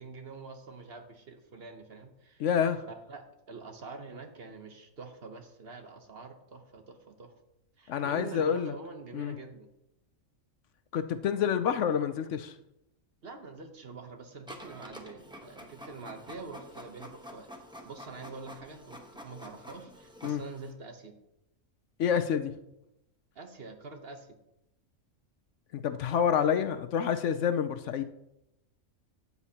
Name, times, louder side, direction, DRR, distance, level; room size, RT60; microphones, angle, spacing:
voice 1, 0.0-2.5 2.9-7.3 7.8-9.7 13.2-17.5 17.8-21.2 23.3-24.4, right 4 dB, 50° right, 5 dB, 1.2 m, -45 dB
voice 2, 2.4-2.9 7.9-8.7 9.1-9.3 10.9-12.5 20.2-20.4 22.0-22.5 25.7-28.0, left 8 dB, 70° left, 10 dB, 0.9 m, -28 dB
Printer, 14.5-20.7, equal, 5° right, 0.9 m, -48 dB
12.5 x 8.3 x 2.9 m, 0.88 s
omnidirectional pair, 1.4 m